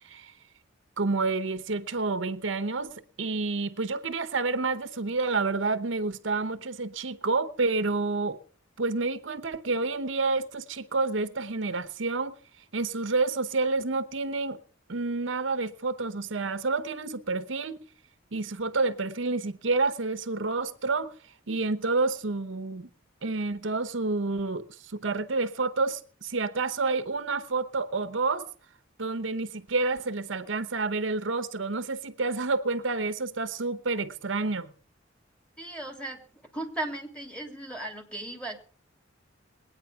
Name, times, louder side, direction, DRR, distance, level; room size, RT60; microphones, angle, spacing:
voice 1, 1.0-8.4 8.8-12.4 12.7-14.6 14.9-17.8 18.3-21.1 21.5-22.9 23.2-28.4 29.0-34.7, right 3 dB, 70° right, 0.9 m, -29 dB
voice 2, 35.6-36.2 36.5-38.7, right 1 dB, 5° left, 2.7 m, -36 dB
20.0 x 9.6 x 5.7 m
head